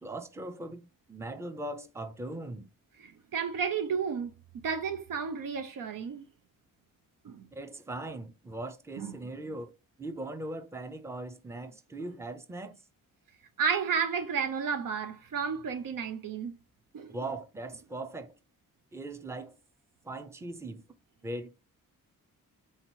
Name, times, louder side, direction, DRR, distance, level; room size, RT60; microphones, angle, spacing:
voice 1, 0.0-2.7 7.5-9.7 10.0-12.8 17.1-18.3 18.9-19.6 20.0-20.9 21.2-21.5, right 2 dB, 10° right, 0.5 m, -39 dB
voice 2, 3.0-4.3 4.6-6.2 7.2-7.5 9.0-9.1 13.6-16.5 16.9-17.2, right 6 dB, 75° right, 0.7 m, -32 dB
3.8 x 2.9 x 4.4 m
wide cardioid pair, 115°, 33 cm